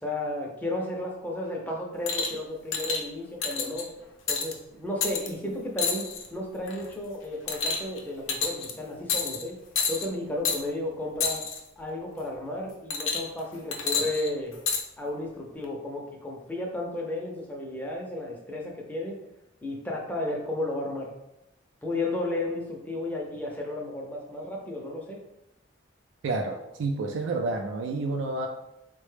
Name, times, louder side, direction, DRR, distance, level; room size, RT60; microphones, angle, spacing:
voice 1, 0.0-3.9 4.3-6.1 6.3-9.6 9.9-11.4 11.8-14.5 15.0-19.2 19.6-21.1 21.8-25.2, left 1 dB, 10° left, -2 dB, 0.5 m, -33 dB
sound 1, 2.1-2.4 2.7-3.0 3.4-3.8 4.3-4.5 5.0-5.3 5.8-6.3 6.7-6.9 7.5-8.0 8.3-8.7 9.1-9.4 9.7-10.1 10.4-10.6 11.2-11.6 12.9-13.4 13.7-14.8 15.6-15.7, left 5 dB, 90° left, 0.5 m, -28 dB
voice 2, 26.2-28.5, right 3 dB, 75° right, 3 dB, 0.3 m, -29 dB
3.9 x 2.2 x 3.2 m, 0.90 s
head